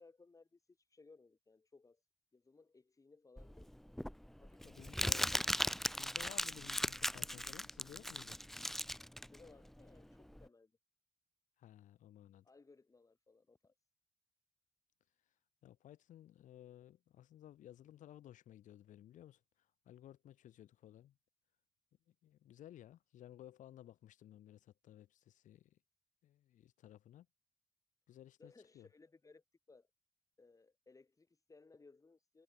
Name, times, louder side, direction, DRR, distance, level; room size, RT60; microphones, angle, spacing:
voice 1, 0.0-2.0 2.3-3.7 4.4-4.9 9.2-10.7 12.4-13.7 28.4-29.9 30.4-32.4, left 3 dB, 25° left, 4.9 m, -63 dB
Crumpling crinkling, 3.4-10.4, equal, ahead, 0.6 m, -38 dB
voice 2, 4.6-5.5 6.0-8.4 11.6-12.4 15.6-19.4 19.8-21.2 22.1-25.8 26.2-27.3 28.1-28.9, left 12 dB, 85° left, 2.9 m, -57 dB
cardioid pair, 100°, 13 cm